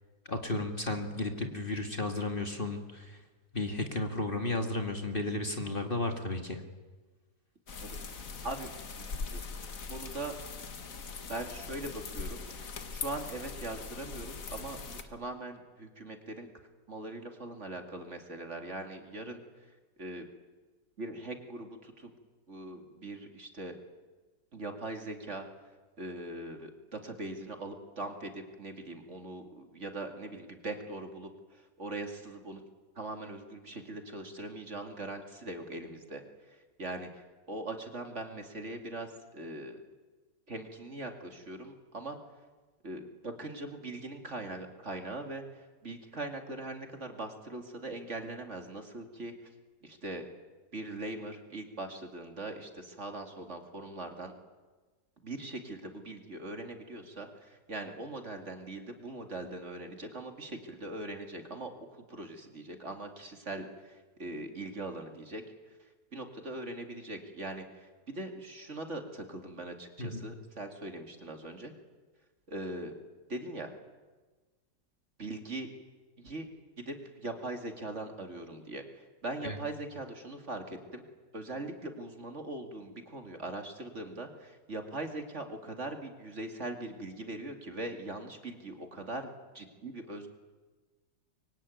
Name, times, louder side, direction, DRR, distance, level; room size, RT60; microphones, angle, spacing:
voice 1, 0.3-3.2 3.5-6.6 70.0-70.3 79.4-79.6, left 2 dB, 30° left, 5 dB, 2.1 m, -33 dB
sound 1, 7.7-15.0, left 4 dB, 50° left, 1.9 m, -41 dB
voice 2, 7.8-8.2 8.4-8.7 9.0-9.4 9.9-10.3 11.3-16.5 16.9-19.4 20.0-20.3 21.0-22.1 22.5-23.8 24.5-25.5 26.0-32.6 33.0-36.2 36.5-39.8 40.5-42.2 42.8-49.3 49.8-50.3 50.7-54.3 55.2-65.4 66.1-71.7 72.5-72.9 73.3-73.7 75.2-75.7 76.2-76.5 76.8-81.0 81.3-90.3, right 2 dB, 40° right, 5 dB, 2.7 m, -41 dB
25.0 x 23.5 x 9.4 m, 1.3 s
omnidirectional pair, 1.8 m